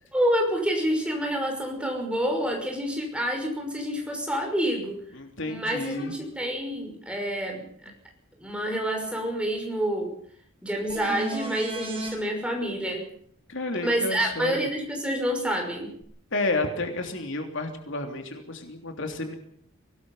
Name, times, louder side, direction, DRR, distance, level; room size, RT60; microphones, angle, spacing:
voice 1, 0.1-5.0 5.5-7.7 8.4-10.1 10.6-13.1 13.8-15.9, equal, 5° right, 1 dB, 5.9 m, -28 dB
voice 2, 5.1-6.2 13.5-14.7 16.3-19.3, left 2 dB, 60° left, 4 dB, 3.2 m, -31 dB
sound 1, 10.9-12.2 16.0-16.1, right 3 dB, 25° right, 5.5 m, -34 dB
24.5 x 18.5 x 5.6 m, 0.63 s
head